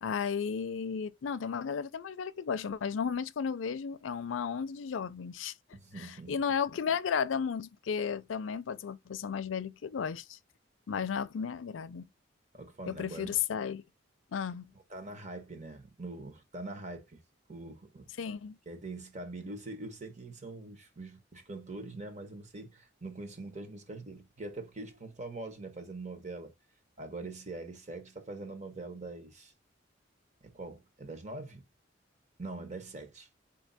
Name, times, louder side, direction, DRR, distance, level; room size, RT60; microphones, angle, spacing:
voice 1, 0.0-5.5 6.0-10.4 10.9-12.1 12.9-13.8 14.3-14.7 18.2-18.6, left 6 dB, 90° left, 0.4 m, -34 dB
voice 2, 5.7-6.4 12.5-13.3 14.9-17.2 17.5-18.1 18.7-26.5 27.0-29.5 30.4-31.6 32.4-33.3, right 2 dB, 40° right, 1.1 m, -43 dB
4.5 x 2.8 x 4.0 m
head